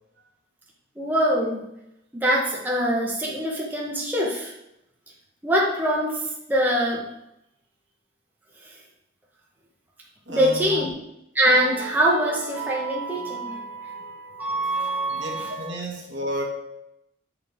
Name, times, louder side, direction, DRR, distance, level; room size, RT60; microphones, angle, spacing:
voice 1, 1.0-1.6 2.1-4.5 5.4-7.0 10.3-10.9 11.3-15.7, right 1 dB, 10° right, -4 dB, 1.0 m, -24 dB
voice 2, 10.3-10.9 15.1-16.4, equal, 65° right, 0 dB, 1.6 m, -32 dB
9.6 x 4.4 x 3.5 m, 0.83 s
head